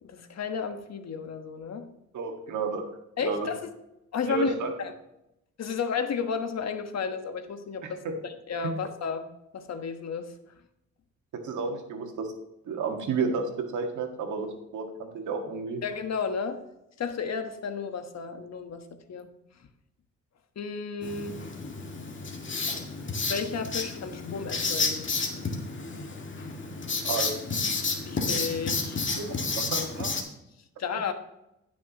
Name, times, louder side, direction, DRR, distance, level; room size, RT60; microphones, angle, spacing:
voice 1, 0.0-1.9 3.2-3.6 4.1-4.9 5.6-10.3 15.8-16.6 17.0-19.3 20.5-21.4 23.3-25.1 28.0-29.0 30.8-31.1, left 5 dB, 60° left, 7 dB, 1.3 m, -33 dB
voice 2, 2.1-2.9 3.2-3.5 4.2-4.7 7.8-8.1 8.6-8.7 11.3-12.3 12.7-15.8 27.0-27.3 29.1-30.1, right 4 dB, 80° right, 3 dB, 1.8 m, -31 dB
Writing, 21.0-30.2, left 4 dB, 40° left, 2.0 m, -31 dB
16.5 x 6.2 x 3.0 m, 0.87 s
cardioid pair, 70°, 29 cm